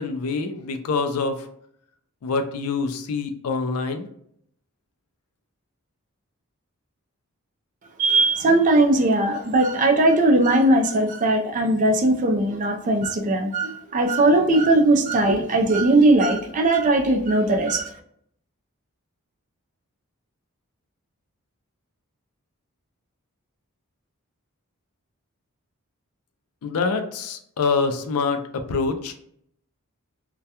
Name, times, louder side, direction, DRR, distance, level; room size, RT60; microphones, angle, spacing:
voice 1, 0.0-1.5 2.2-4.1 26.6-29.1, left 4 dB, 85° left, 7 dB, 0.4 m, -25 dB
voice 2, 8.0-17.9, right 2 dB, 35° right, 2 dB, 0.3 m, -19 dB
2.2 x 2.1 x 2.7 m, 0.68 s
head